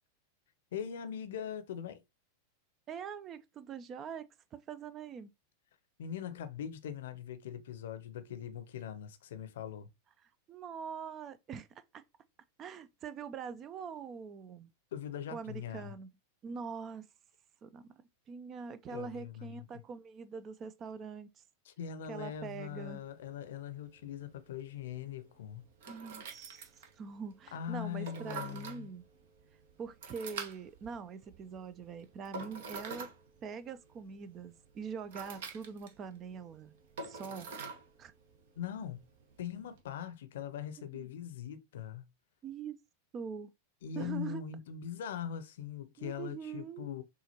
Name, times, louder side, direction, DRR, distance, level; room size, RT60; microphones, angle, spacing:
voice 1, 0.7-2.0 6.0-9.9 14.9-16.0 18.9-19.7 21.7-25.7 27.5-28.9 38.6-39.0 39.4-42.0 43.8-47.0, left 9 dB, 60° left, 0.7 m, -41 dB
voice 2, 2.9-5.3 10.5-12.0 12.6-14.7 15.3-16.1 16.4-17.1 17.6-17.9 18.3-21.4 22.1-23.0 25.9-29.0 29.8-33.1 33.4-36.8 37.0-37.5 38.0-38.1 40.8-41.1 42.4-42.8 43.1-43.5 44.0-44.4 46.0-46.9, right 6 dB, 30° right, 0.5 m, -43 dB
sound 1, 22.3-39.8, right 4 dB, 55° right, 0.9 m, -48 dB
6.3 x 2.5 x 2.8 m
figure-of-eight pair, 90°, 0 cm